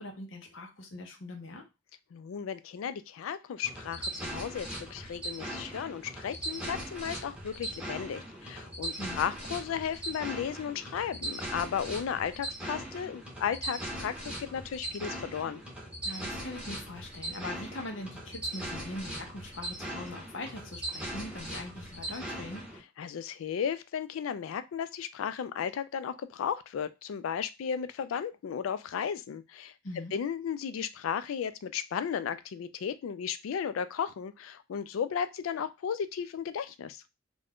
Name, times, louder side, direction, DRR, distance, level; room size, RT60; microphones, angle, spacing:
voice 1, 0.0-1.6 9.0-9.2 16.0-22.6 29.8-30.1, left 1 dB, 65° left, 3 dB, 0.7 m, -42 dB
voice 2, 2.1-15.6 23.0-37.0, left 7 dB, 85° left, 13 dB, 0.3 m, -35 dB
sound 1, 3.6-22.8, right 1 dB, 5° right, 0.8 m, -39 dB
2.5 x 2.2 x 3.4 m, 0.24 s
head